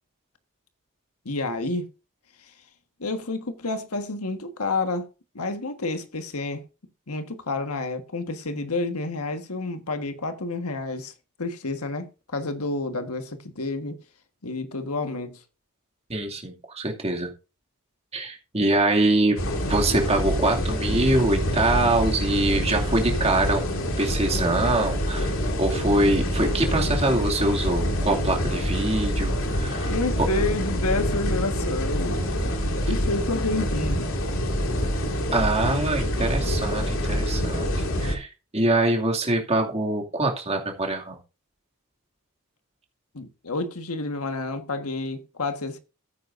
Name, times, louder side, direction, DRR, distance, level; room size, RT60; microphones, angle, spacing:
voice 1, 1.2-1.9 3.0-5.1 5.3-6.6 7.1-11.1 11.4-14.0 14.4-15.4 29.9-32.2 32.9-34.0 43.1-45.8, left 2 dB, 80° left, 1.5 m, -29 dB
voice 2, 16.1-17.3 18.1-19.4 19.7-30.3 35.3-37.7 38.0-38.3 38.5-41.2, right 2 dB, 30° right, 2.4 m, -24 dB
sound 1, 19.4-38.2, equal, 60° left, 2.3 m, -26 dB
14.0 x 9.3 x 2.6 m
head